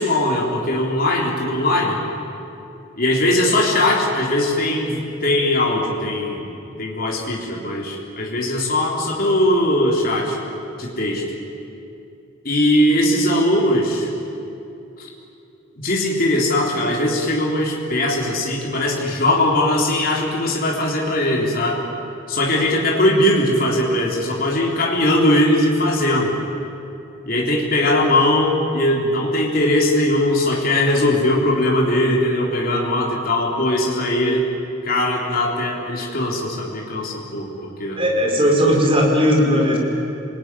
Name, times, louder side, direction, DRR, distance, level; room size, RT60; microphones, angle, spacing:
voice 1, 0.0-2.0 3.0-10.4 10.8-11.2 12.5-14.1 15.0-15.1 15.8-21.8 22.3-26.3 27.3-34.5 34.8-38.0, left 1 dB, 45° left, -2 dB, 3.6 m, -20 dB
voice 2, 38.0-39.8, equal, 25° right, -1 dB, 5.1 m, -17 dB
27.0 x 20.0 x 9.9 m, 2.7 s
head